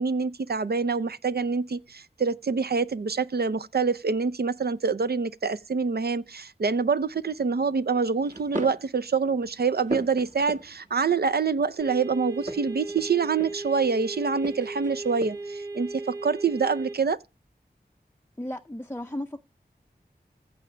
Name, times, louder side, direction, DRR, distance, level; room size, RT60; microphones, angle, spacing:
voice 1, 0.0-17.2, right 5 dB, 65° right, 0.6 m, -26 dB
sound 1, 7.0-7.4 8.2-8.9 9.3-11.0 12.3-13.8 14.4-15.6, right 1 dB, 45° right, 1.8 m, -38 dB
sound 2, 11.8-17.0, right 2 dB, 80° right, 1.6 m, -36 dB
voice 2, 18.4-19.4, left 1 dB, 15° left, 0.5 m, -34 dB
15.0 x 5.1 x 3.3 m
wide cardioid pair, 40°, 18 cm